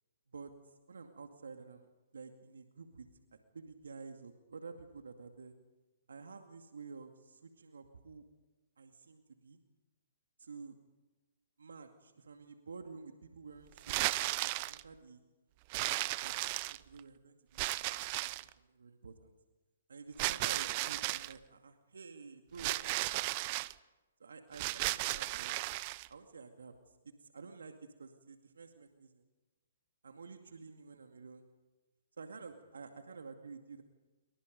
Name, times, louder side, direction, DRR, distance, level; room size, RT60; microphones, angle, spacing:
voice 1, 0.3-5.5 6.1-8.3 8.8-9.6 10.4-10.8 11.6-15.2 15.7-16.5 16.9-19.3 19.9-23.7 24.2-25.6 26.1-29.2 30.0-31.5 32.2-33.8, right 4 dB, 80° right, 5 dB, 2.2 m, -51 dB
sound 1, 13.8-14.8 15.7-17.0 17.6-18.5 20.2-21.3 22.6-23.7 24.5-26.1, right 21 dB, 40° right, 0.7 m, -35 dB
28.5 x 24.0 x 5.3 m, 1.1 s
hypercardioid pair, 130°, 0 cm